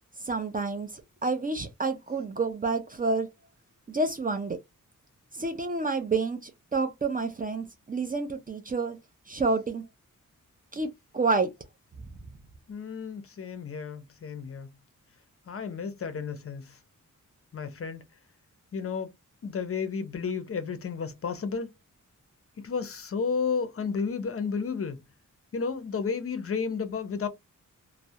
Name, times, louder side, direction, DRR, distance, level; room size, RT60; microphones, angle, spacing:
voice 1, 0.3-3.3 3.9-4.6 5.3-9.0 9.3-9.8 10.7-10.9 11.1-11.5, right 3 dB, 30° right, 0.4 m, -29 dB
voice 2, 12.7-14.7 15.5-16.8 17.5-18.0 18.7-19.1 19.4-21.7 22.6-25.0 25.5-27.3, left 5 dB, 45° left, 0.5 m, -32 dB
2.3 x 2.0 x 2.6 m
wide cardioid pair, 145°, 32 cm